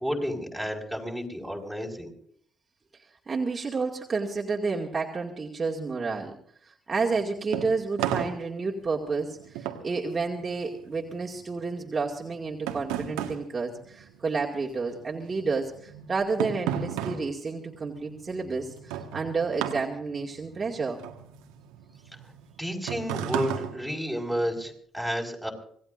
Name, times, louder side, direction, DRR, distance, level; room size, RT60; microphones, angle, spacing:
voice 1, 0.0-2.1 22.6-25.5, equal, 5° left, 2 dB, 5.4 m, -31 dB
voice 2, 3.3-6.3 6.7-21.0, right 4 dB, 35° right, -2 dB, 2.3 m, -30 dB
sound 1, 7.0-14.7 14.9-24.6, right 9 dB, 75° right, 1.5 m, -35 dB
26.0 x 18.0 x 2.6 m, 0.62 s
hypercardioid pair, 50°, 0 cm